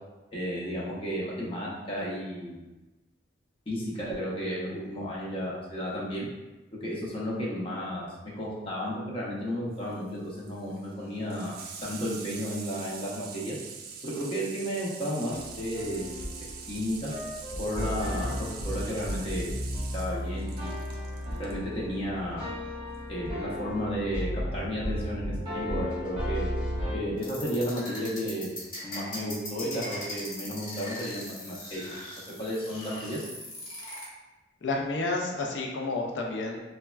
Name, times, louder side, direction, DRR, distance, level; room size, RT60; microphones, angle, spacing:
voice 1, 0.3-2.7 3.7-6.3 6.8-8.1 8.4-13.6 14.0-16.1 16.7-17.1 17.6-19.5 19.9-20.8 21.4-22.5 23.1-26.5 26.9-28.5 28.8-31.8 32.4-33.2, equal, 30° left, -5 dB, 0.6 m, -33 dB
Water tap faucet / Sink (filling or washing), 9.7-21.6 22.9-23.0, right 6 dB, 55° right, 0.3 m, -44 dB
sound 1, 15.3-27.0, equal, 30° right, 0.8 m, -34 dB
sound 2, 27.2-34.0, left 1 dB, 50° left, 1.1 m, -39 dB
voice 2, 34.6-36.6, left 2 dB, 75° left, 0 dB, 0.4 m, -30 dB
3.3 x 2.2 x 2.2 m, 1.1 s
head